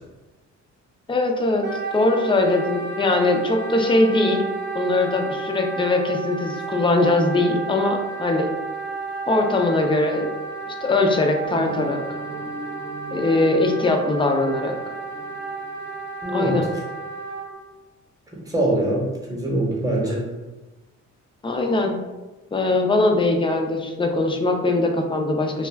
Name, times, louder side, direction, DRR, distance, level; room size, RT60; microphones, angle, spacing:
voice 1, 1.1-1.7 1.9-4.4 4.7-8.5 9.3-10.3 10.7-12.0 13.1-14.7 16.3-16.7 21.4-22.0 22.5-25.7, left 2 dB, 15° left, 3 dB, 0.4 m, -21 dB
Wind instrument woodwind instrument, 1.6-17.5, right 4 dB, 35° right, 0.6 m, -32 dB
sound 1, 11.4-16.2, right 2 dB, 90° right, 0.8 m, -38 dB
voice 2, 16.2-16.7 18.5-20.2, right 1 dB, 10° right, -3 dB, 0.9 m, -23 dB
2.3 x 2.2 x 3.3 m, 1.1 s
cardioid pair, 90°, 30 cm